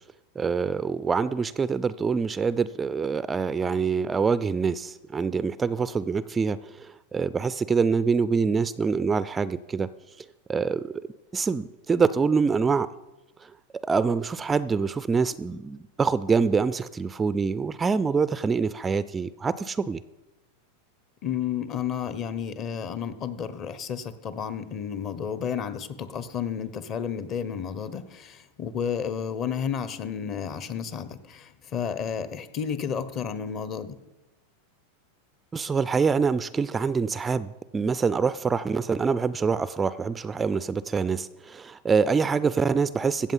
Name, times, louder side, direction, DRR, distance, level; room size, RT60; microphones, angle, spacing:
voice 1, 0.4-9.9 10.5-10.9 11.3-12.9 13.8-20.0 35.5-43.3, right 5 dB, 15° right, 16 dB, 0.4 m, -25 dB
voice 2, 21.2-34.0, left 7 dB, 35° left, 14 dB, 0.9 m, -32 dB
15.5 x 7.4 x 5.6 m, 1.0 s
supercardioid pair, 125°, 0 cm